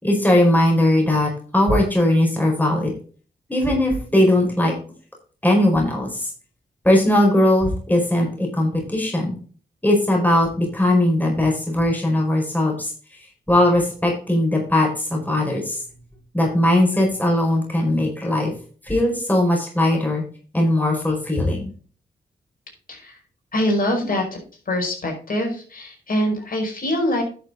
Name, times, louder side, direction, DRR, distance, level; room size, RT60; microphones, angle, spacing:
voice 1, 0.0-2.9 3.5-4.7 5.4-6.3 6.8-9.4 9.8-12.9 13.5-15.8 16.3-18.5 18.8-20.2 20.5-21.7 24.0-24.1, left 1 dB, 10° left, 0 dB, 4.7 m, -19 dB
voice 2, 22.9-23.2 23.5-24.4 24.7-27.2, left 1 dB, 50° left, 1 dB, 5.3 m, -24 dB
11.0 x 6.9 x 3.9 m, 0.41 s
cardioid pair, 55°, 18 cm